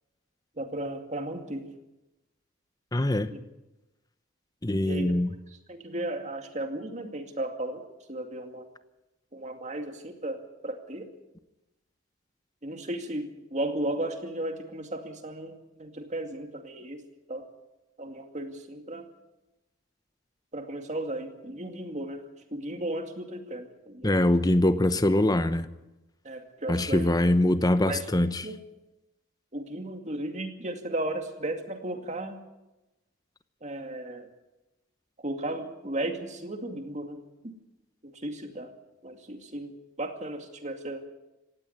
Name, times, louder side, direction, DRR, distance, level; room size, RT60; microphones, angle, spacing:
voice 1, 0.6-1.7 3.3-3.4 4.8-5.1 5.7-8.7 9.3-11.1 12.6-17.0 17.3-17.4 18.0-19.1 20.5-22.2 22.5-24.5 26.2-27.1 27.9-28.1 28.4-28.6 29.5-32.4 33.6-34.3 35.2-37.5 38.0-38.7 39.0-39.7 40.0-41.0, right 1 dB, 35° right, 5 dB, 2.3 m, -35 dB
voice 2, 2.9-3.3 4.6-5.3 24.0-25.7 26.7-28.5, left 1 dB, 20° left, 12 dB, 0.9 m, -23 dB
18.0 x 16.0 x 9.4 m, 0.99 s
head